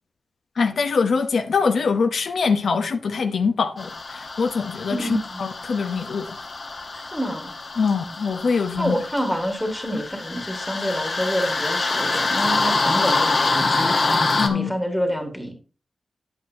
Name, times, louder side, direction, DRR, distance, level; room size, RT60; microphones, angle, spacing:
voice 1, 0.6-5.1 5.4-6.4 7.8-9.0 14.4-14.7, left 5 dB, 75° left, 0.7 m, -23 dB
sound 1, 3.8-14.5, left 3 dB, 45° left, 1.0 m, -25 dB
voice 2, 4.9-5.4 6.9-7.5 8.8-13.9 14.5-15.5, equal, 5° left, 1.7 m, -27 dB
10.0 x 8.0 x 2.7 m
wide cardioid pair, 160°, 0 cm